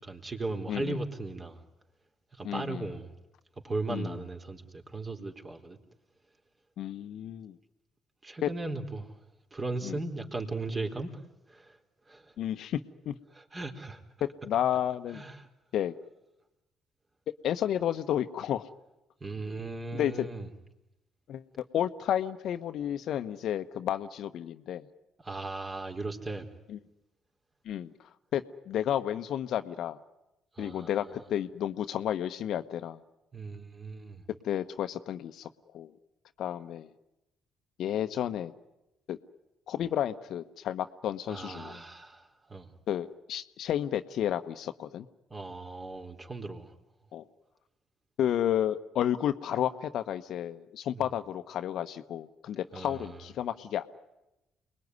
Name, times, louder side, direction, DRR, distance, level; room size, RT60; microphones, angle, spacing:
voice 1, 0.0-1.6 2.3-3.1 3.6-5.8 8.2-9.2 9.5-11.2 11.5-11.8 12.1-12.3 13.3-14.0 15.1-15.5 19.2-20.5 25.2-26.5 30.6-31.0 33.3-34.2 41.3-42.7 45.3-46.7 50.9-51.1 52.7-53.2, right 3 dB, 30° right, 4 dB, 4.1 m, -37 dB
voice 2, 0.7-1.0 2.4-2.9 3.9-4.2 6.8-7.5 8.4-8.5 9.8-10.0 12.4-13.2 14.2-15.2 15.7-15.9 17.4-18.7 19.9-20.3 21.3-24.9 26.7-26.8 27.6-27.9 28.3-30.0 30.6-33.0 34.4-35.5 35.7-35.9 36.4-36.9 37.8-38.5 39.1-39.2 39.7-41.8 42.9-45.1 47.1-47.2 48.2-54.0, left 10 dB, 60° left, 11 dB, 1.1 m, -31 dB
29.5 x 21.0 x 9.6 m, 0.95 s
hypercardioid pair, 50°, 0 cm